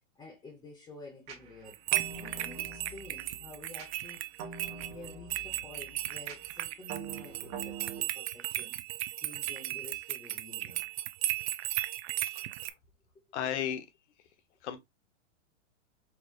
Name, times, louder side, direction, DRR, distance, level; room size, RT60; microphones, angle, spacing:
voice 1, 0.1-1.8 2.1-8.8 9.2-10.9, left 2 dB, 10° left, 0.8 m, -51 dB
sound 1, 1.3-8.0, right 5 dB, 35° right, 1.3 m, -45 dB
sound 2, 1.7-12.7, right 14 dB, 55° right, 0.5 m, -36 dB
voice 2, 12.3-12.7 13.3-13.9 14.6-14.8, left 9 dB, 60° left, 1.0 m, -34 dB
4.6 x 3.3 x 2.4 m
supercardioid pair, 150°, 38 cm